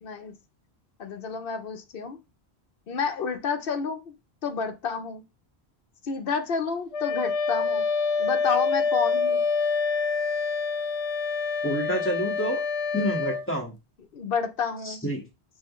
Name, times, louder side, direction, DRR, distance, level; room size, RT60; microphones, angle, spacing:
voice 1, 0.0-0.4 1.0-2.2 2.9-4.1 4.4-5.2 6.0-7.8 8.2-9.4 14.1-15.0, left 5 dB, 60° left, 0.9 m, -30 dB
Wind instrument woodwind instrument, 6.9-13.5, left 5 dB, 85° left, 0.9 m, -26 dB
voice 2, 11.6-12.6 12.9-13.7 14.8-15.2, equal, 10° left, 1.6 m, -28 dB
6.1 x 2.8 x 3.1 m
omnidirectional pair, 1.1 m